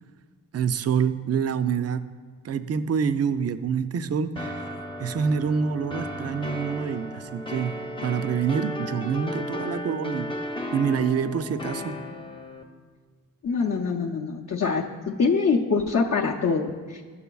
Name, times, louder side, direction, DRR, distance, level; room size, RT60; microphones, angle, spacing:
voice 1, 0.5-2.0 2.4-4.7 5.0-7.8 8.0-10.3 10.7-12.0, right 6 dB, 45° right, 12 dB, 0.4 m, -26 dB
sound 1, 4.4-12.6, left 1 dB, 15° left, 0.7 m, -34 dB
voice 2, 13.4-17.0, left 4 dB, 45° left, -1 dB, 0.6 m, -24 dB
10.5 x 6.9 x 2.3 m, 1.5 s
cardioid pair, 55°, 37 cm